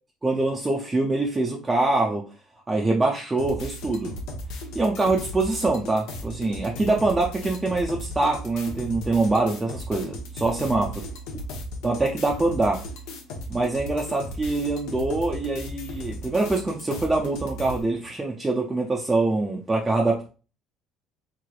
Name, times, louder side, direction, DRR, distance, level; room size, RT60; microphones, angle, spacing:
voice 1, 0.2-2.3 2.7-4.2 4.7-11.1 11.8-12.8 13.5-20.3, right 2 dB, 15° right, 0.4 m, -24 dB
sound 1, 3.4-17.8, equal, 80° left, 0.8 m, -36 dB
3.6 x 3.1 x 2.3 m
cardioid pair, 130°, 0 cm